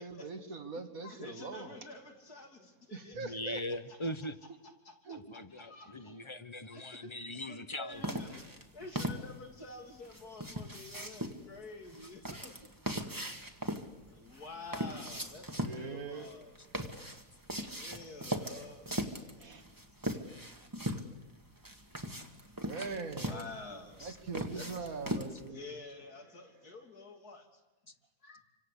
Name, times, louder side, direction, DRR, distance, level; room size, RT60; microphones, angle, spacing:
voice 1, 0.0-1.8 2.9-3.6 5.0-5.2 5.9-6.2 15.6-16.3 19.4-19.6 20.5-20.7 22.7-25.7 26.1-26.7, right 4 dB, 65° right, 7 dB, 2.5 m, -43 dB
voice 2, 1.0-3.3 4.6-5.2 5.5-6.2 6.7-12.7 13.1-13.3 14.1-16.5 17.7-18.9 20.9-21.0 23.2-24.1 24.5-24.9 25.5-27.5 28.2-28.4, left 3 dB, 80° left, 4 dB, 3.6 m, -49 dB
voice 3, 3.1-4.4 5.1-8.0 22.8-22.9 24.0-24.2, left 1 dB, 25° left, 13 dB, 0.9 m, -41 dB
sound 1, 8.0-25.5, equal, 15° right, 1.8 m, -39 dB
27.0 x 25.5 x 8.4 m, 1.0 s
omnidirectional pair, 1.6 m